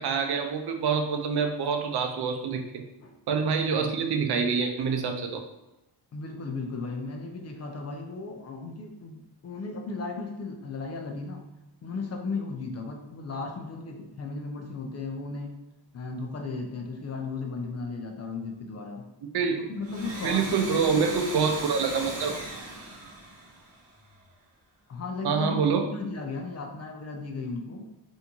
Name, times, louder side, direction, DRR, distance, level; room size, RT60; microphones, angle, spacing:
voice 1, 0.0-2.8 3.3-5.4 19.3-19.6 20.2-22.4 25.2-25.8, right 5 dB, 60° right, 5 dB, 0.6 m, -26 dB
voice 2, 6.1-11.4 11.8-15.5 15.9-19.0 19.4-21.0 24.9-25.6 25.9-27.9, left 3 dB, 35° left, 3 dB, 0.5 m, -35 dB
Domestic sounds home sounds, 19.7-24.2, right 1 dB, 30° right, 1.1 m, -38 dB
3.4 x 2.7 x 2.9 m, 0.95 s
cardioid pair, 110°, 43 cm